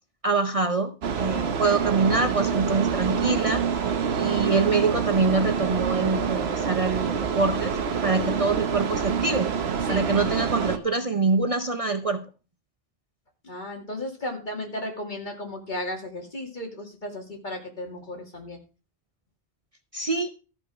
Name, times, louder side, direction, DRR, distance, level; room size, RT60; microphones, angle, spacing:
voice 1, 0.2-3.6 4.2-9.5 9.9-12.2 19.9-20.3, right 4 dB, 40° right, 8 dB, 0.7 m, -25 dB
sound 1, 1.0-10.8, right 6 dB, 80° right, 1.2 m, -26 dB
voice 2, 13.4-18.6, left 1 dB, 50° left, 2 dB, 2.5 m, -34 dB
13.5 x 6.2 x 4.8 m, 0.34 s
omnidirectional pair, 1.0 m